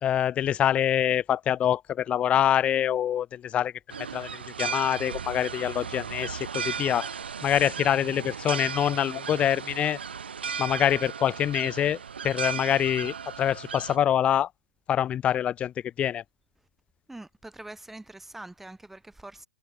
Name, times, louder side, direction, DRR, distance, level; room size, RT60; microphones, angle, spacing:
voice 1, 0.0-3.7 4.1-7.1 7.4-10.0 10.6-12.0 12.2-14.5 14.9-16.2, left 10 dB, 20° left, 0.9 m, -25 dB
sound 1, 3.9-14.0, right 6 dB, 75° right, 2.9 m, -36 dB
voice 2, 17.1-19.5, right 2 dB, 5° right, 2.9 m, -44 dB
hypercardioid pair, 120°, 6 cm